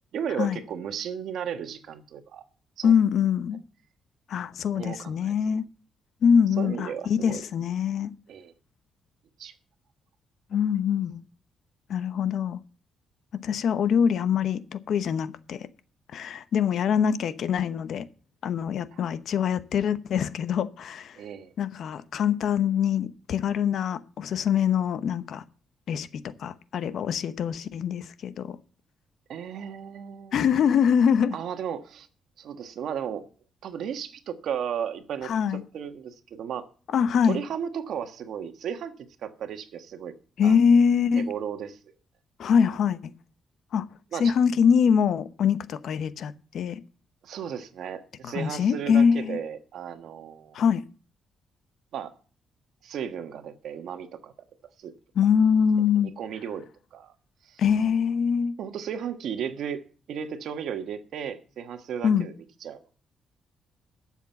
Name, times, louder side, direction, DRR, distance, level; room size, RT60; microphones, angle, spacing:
voice 1, 0.1-2.4 2.8-2.9 4.7-5.3 6.6-7.4 8.3-8.5 9.4-9.5 18.9-19.0 21.2-21.5 29.3-30.4 31.3-32.1 32.4-33.2 33.6-36.7 37.2-38.9 39.2-40.1 40.4-40.6 41.2-41.9 44.1-44.3 47.2-50.6 51.9-52.1 52.8-54.3 54.8-54.9 56.0-56.7 56.9-57.1 57.4-57.6 58.6-59.8 60.1-62.3 62.6-62.9, right 8 dB, 70° right, 1.4 m, -35 dB
voice 2, 2.8-3.6 4.3-5.6 6.2-8.1 10.5-11.2 11.9-12.6 13.3-15.7 16.1-18.1 18.4-21.2 21.6-25.4 25.9-28.6 30.3-31.4 35.2-35.6 36.9-37.4 40.4-41.3 42.4-43.1 43.7-43.8 44.2-46.8 48.2-49.4 50.5-50.8 55.2-56.1 57.6-58.5 62.0-62.3, left 7 dB, 65° left, 0.9 m, -24 dB
12.0 x 7.3 x 7.1 m
cardioid pair, 135°, 0 cm